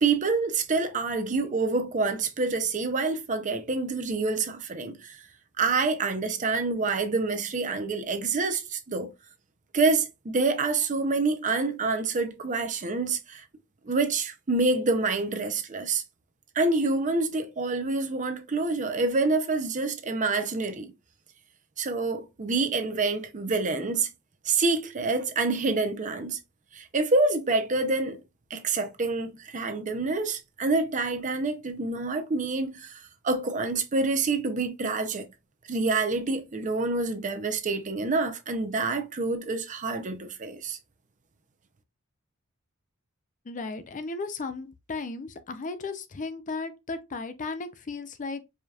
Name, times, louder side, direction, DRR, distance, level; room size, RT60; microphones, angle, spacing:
voice 1, 0.0-5.2 5.6-9.1 9.7-13.4 13.9-16.0 16.5-20.9 21.8-24.1 24.4-26.4 26.7-28.2 28.5-35.3 35.7-40.8, right 3 dB, 35° right, 0.6 m, -27 dB
voice 2, 43.5-48.4, left 3 dB, 35° left, 0.5 m, -35 dB
4.9 x 2.8 x 2.3 m
head